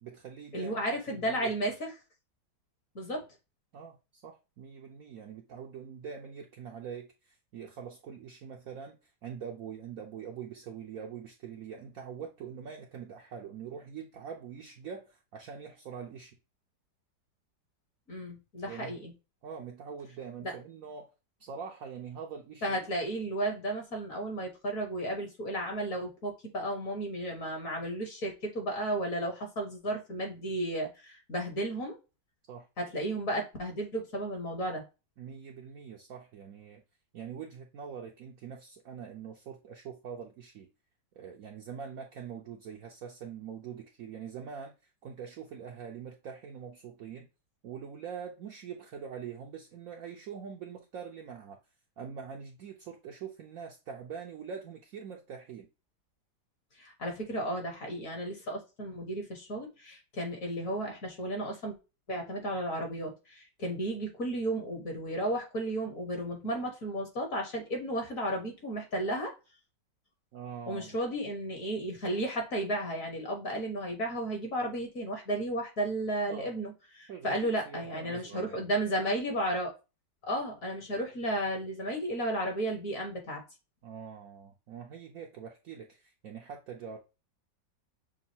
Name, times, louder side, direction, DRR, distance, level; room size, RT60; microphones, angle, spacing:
voice 1, 0.0-1.5 3.7-16.4 18.6-19.0 19.4-21.1 21.4-22.9 32.5-32.7 35.2-36.8 37.1-40.7 41.1-44.7 45.0-47.3 47.6-51.6 52.0-55.7 70.3-71.0 76.3-76.5 77.1-78.7 83.8-87.0, right 7 dB, 65° right, 0.9 m, -44 dB
voice 2, 0.5-1.9 2.9-3.2 18.1-19.1 20.4-20.5 22.6-32.0 32.8-34.8 56.8-61.7 62.1-69.3 70.7-79.7 80.2-83.4, right 1 dB, 50° left, 1.5 m, -33 dB
6.3 x 2.4 x 2.7 m
omnidirectional pair, 1.9 m